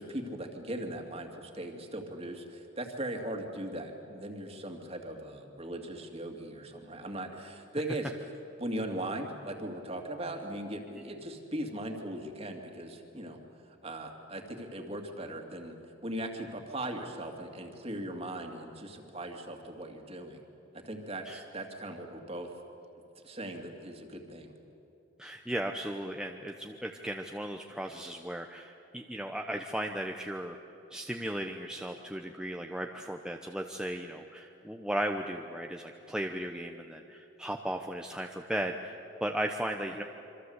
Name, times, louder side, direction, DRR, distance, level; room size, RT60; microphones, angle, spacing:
voice 1, 0.0-8.1 8.6-13.4 13.8-15.8 16.0-20.4 20.7-22.5 23.2-24.5, right 1 dB, 30° right, 4 dB, 2.5 m, -39 dB
voice 2, 25.2-30.6 30.9-40.0, right 1 dB, 5° right, 3 dB, 0.9 m, -36 dB
26.5 x 25.0 x 8.1 m, 2.8 s
head